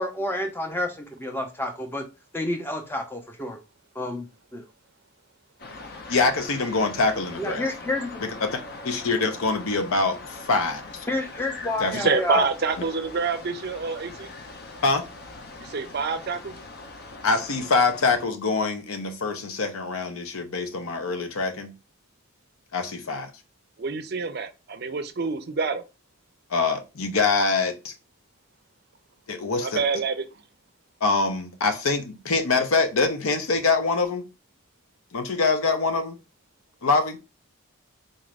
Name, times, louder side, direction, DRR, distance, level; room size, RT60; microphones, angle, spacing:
voice 1, 0.0-2.1 2.3-3.6 3.9-4.3 4.5-4.6 7.4-8.2 11.1-12.5, left 1 dB, 10° left, 0.6 m, -29 dB
sound 1, 5.6-18.3, left 3 dB, 50° left, 0.6 m, -41 dB
voice 2, 6.1-7.7 8.2-10.8 11.8-12.0 14.8-15.0 17.2-21.7 22.7-23.3 26.5-27.9 29.3-29.8 31.0-34.2 35.1-36.2 36.8-37.2, left 3 dB, 80° left, 0.7 m, -24 dB
voice 3, 11.9-14.3 15.6-16.5 23.8-25.8 29.6-30.3, right 4 dB, 50° right, 0.5 m, -27 dB
4.0 x 2.5 x 3.2 m
head